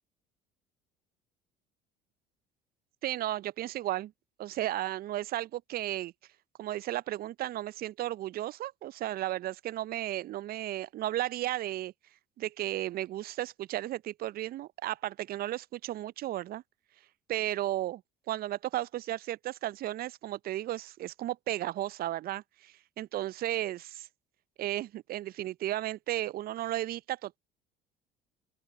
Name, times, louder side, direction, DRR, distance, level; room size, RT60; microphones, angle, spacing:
voice 1, 3.0-4.1 4.4-6.1 6.6-11.9 12.4-16.6 17.3-18.0 18.3-24.1 24.6-27.4, right 14 dB, 45° right, 0.5 m, -34 dB
open air
hypercardioid pair, 65°, 21 cm